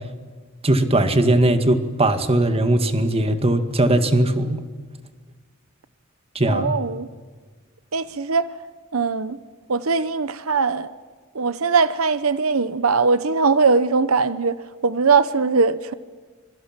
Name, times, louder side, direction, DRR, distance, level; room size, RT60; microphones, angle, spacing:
voice 1, 0.6-4.6 6.4-6.7, right 1 dB, 30° right, 2.0 m, -19 dB
voice 2, 6.5-7.1 7.9-8.5 8.9-9.4 9.7-10.9 11.3-14.6 14.8-15.9, right 4 dB, 85° right, 0.9 m, -20 dB
26.0 x 23.0 x 7.5 m
head